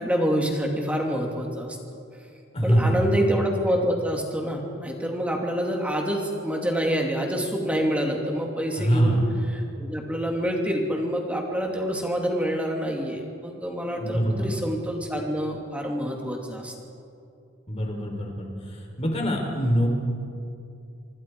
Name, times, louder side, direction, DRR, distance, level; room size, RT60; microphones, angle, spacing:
voice 1, 0.0-1.8 2.6-9.2 9.5-16.7, equal, 5° right, 0 dB, 2.6 m, -27 dB
voice 2, 2.5-3.2 8.8-9.3 13.9-14.5 17.7-18.5 19.0-19.9, equal, 30° left, 1 dB, 4.0 m, -23 dB
26.0 x 24.0 x 4.8 m, 2.5 s
head